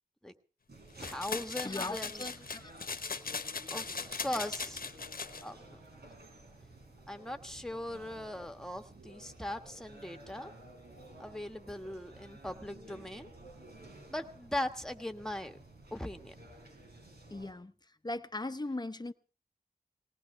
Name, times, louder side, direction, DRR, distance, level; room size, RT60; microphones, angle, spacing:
sound 1, 0.7-17.5, right 1 dB, 85° right, 5.0 m, -53 dB
sound 2, 1.0-5.4, left 4 dB, 65° left, 1.0 m, -39 dB
voice 1, 1.0-2.2 3.7-4.8 5.4-5.8 7.1-10.5 11.2-13.3 14.1-15.6 15.9-16.3, left 1 dB, 5° left, 1.5 m, -39 dB
voice 2, 1.6-2.7 5.5-5.6 17.3-17.7 18.0-19.1, left 2 dB, 25° left, 0.8 m, -39 dB
20.0 x 19.0 x 3.3 m
wide cardioid pair, 85°, 16 cm